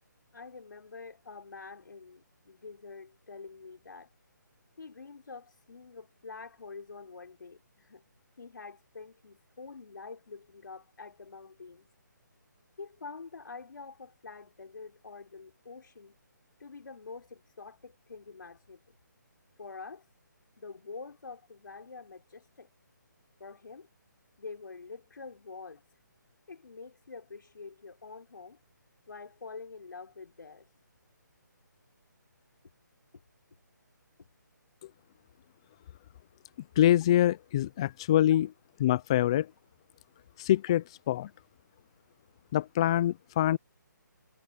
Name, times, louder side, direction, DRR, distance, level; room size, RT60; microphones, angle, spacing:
voice 1, 0.3-4.1 4.8-8.0 8.4-11.9 12.8-16.2 16.6-19.0 19.6-20.0 20.6-22.7 23.4-23.9 24.4-25.8 26.5-28.6 29.1-30.7 32.6-32.7 33.1-33.2 38.3-38.4, left 4 dB, 75° left, 4.1 m, -46 dB
voice 2, 36.8-38.5 38.8-39.5 40.4-41.3 42.5-43.6, left 12 dB, 15° left, 0.3 m, -25 dB
hypercardioid pair, 165°, 11 cm